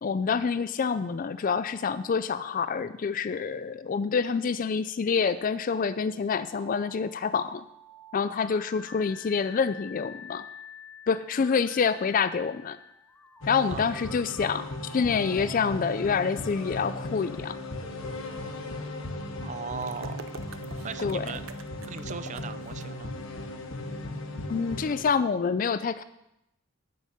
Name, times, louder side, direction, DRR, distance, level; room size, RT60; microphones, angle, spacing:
voice 1, 0.0-7.6 8.1-10.4 11.1-12.8 13.5-17.6 21.0-21.3 24.5-26.0, left 5 dB, 40° left, 13 dB, 0.4 m, -27 dB
sound 1, 6.6-20.4, left 3 dB, 5° left, 0.7 m, -49 dB
sound 2, 13.4-25.0, left 1 dB, 80° left, 1.2 m, -37 dB
voice 2, 19.4-20.2 20.8-21.4 21.8-23.2, right 5 dB, 35° right, 13 dB, 0.4 m, -38 dB
sound 3, 19.8-22.9, right 5 dB, 80° right, 0.6 m, -45 dB
9.7 x 6.5 x 6.8 m, 0.85 s
head